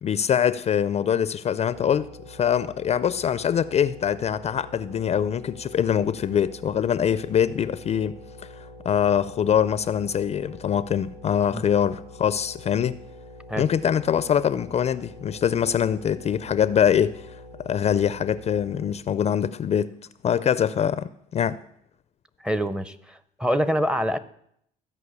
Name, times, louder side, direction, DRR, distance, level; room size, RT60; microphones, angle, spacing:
voice 1, 0.0-13.0 13.6-17.2 17.6-19.9 20.2-21.6, left 8 dB, 40° left, 0.4 m, -24 dB
sound 1, 1.7-18.9, left 1 dB, 75° right, 4.2 m, -45 dB
voice 2, 22.4-24.2, equal, 5° right, 0.6 m, -25 dB
14.5 x 5.3 x 8.1 m
cardioid pair, 110°, 17 cm